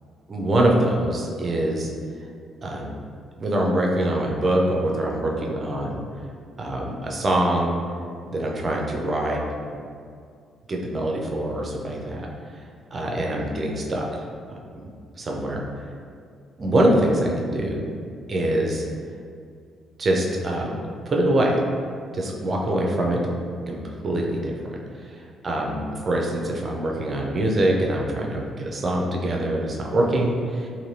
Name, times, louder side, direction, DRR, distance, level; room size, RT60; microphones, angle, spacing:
voice 1, 0.3-1.9 2.6-2.9 3.4-6.0 6.6-7.7 8.3-9.4 10.7-12.2 12.9-14.1 14.5-14.9 15.2-15.6 16.6-17.9 18.3-18.9 20.0-20.7 21.1-21.6 22.1-23.3 23.6-24.6 25.1-30.7, right 1 dB, 40° right, -1 dB, 0.5 m, -24 dB
2.6 x 2.6 x 3.2 m, 2.2 s
cardioid pair, 90°, 0 cm